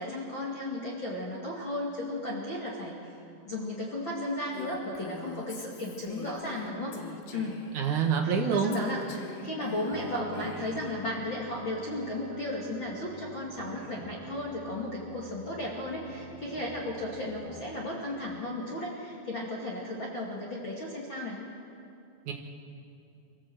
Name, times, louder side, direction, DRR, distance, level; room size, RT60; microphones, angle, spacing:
voice 1, 0.0-3.1 3.4-7.0 7.3-7.6 8.2-21.4, left 1 dB, 45° left, -4 dB, 1.6 m, -35 dB
Female speech woman speaking, 4.5-7.8 8.7-11.0, left 4 dB, 75° left, 3.9 m, -44 dB
voice 2, 7.7-8.8 22.2-22.3, right 6 dB, 75° right, 2 dB, 1.8 m, -26 dB
sound 1, 9.9-17.9, right 4 dB, 55° right, 2.8 m, -47 dB
25.0 x 15.0 x 7.9 m, 2.7 s
omnidirectional pair, 5.5 m